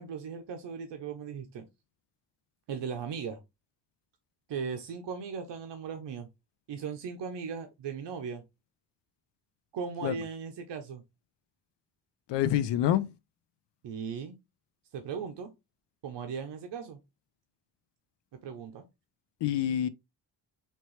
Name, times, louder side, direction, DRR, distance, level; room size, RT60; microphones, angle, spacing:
voice 1, 0.0-1.6 2.7-3.4 4.5-6.3 6.7-8.4 9.7-11.0 13.8-14.4 14.9-15.5 16.0-17.0 18.4-18.9, right 6 dB, 80° right, 0.8 m, -37 dB
voice 2, 12.3-13.1 19.4-19.9, left 11 dB, 80° left, 0.5 m, -26 dB
4.3 x 3.0 x 3.1 m
wide cardioid pair, 145°, 42 cm